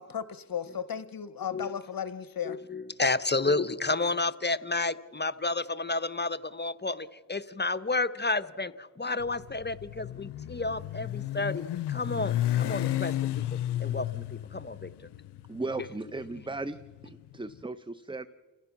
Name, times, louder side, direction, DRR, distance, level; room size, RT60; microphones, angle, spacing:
voice 1, 0.0-2.6, left 8 dB, 60° left, 13 dB, 0.9 m, -35 dB
voice 2, 2.4-14.9, left 3 dB, 25° left, 12 dB, 0.9 m, -31 dB
Motorcycle, 9.2-17.4, left 13 dB, 85° left, 0.5 m, -33 dB
voice 3, 15.5-16.8 17.0-18.3, right 3 dB, 10° right, 13 dB, 0.7 m, -36 dB
30.0 x 15.5 x 5.9 m, 1.4 s
cardioid pair, 45°, 40 cm